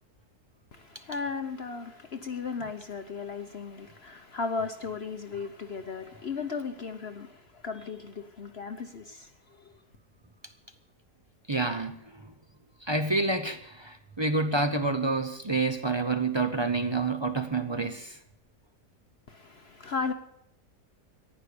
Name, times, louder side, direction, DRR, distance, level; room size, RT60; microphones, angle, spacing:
voice 1, 0.7-9.3 9.6-9.7 19.3-20.1, left 4 dB, 50° left, 1.0 m, -36 dB
voice 2, 11.5-12.3 12.8-18.2, right 3 dB, 25° right, 0.6 m, -28 dB
14.5 x 11.0 x 6.7 m
omnidirectional pair, 1.7 m